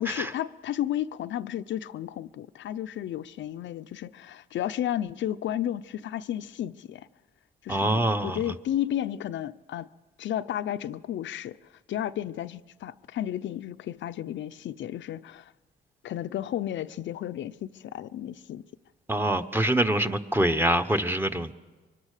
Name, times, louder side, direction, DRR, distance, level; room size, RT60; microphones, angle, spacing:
voice 1, 0.0-7.1 7.6-9.9 10.2-11.6 11.9-15.5 16.0-18.6, left 11 dB, 70° left, 0.7 m, -33 dB
voice 2, 7.7-8.5 19.1-21.5, right 1 dB, 10° right, 1.2 m, -25 dB
25.0 x 24.5 x 6.7 m
cardioid pair, 90°, 20 cm